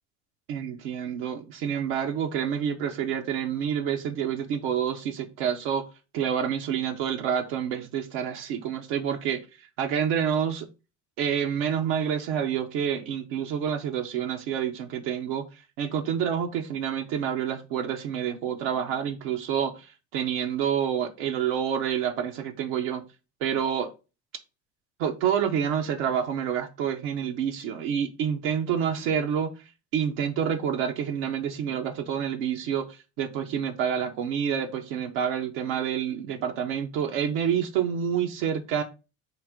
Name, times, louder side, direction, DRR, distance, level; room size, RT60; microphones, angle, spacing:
voice 1, 0.5-5.8 6.1-10.7 11.2-23.0 23.4-23.9 25.0-38.8, right 8 dB, 85° right, 0.6 m, -28 dB
4.8 x 2.6 x 3.5 m
supercardioid pair, 70°, 36 cm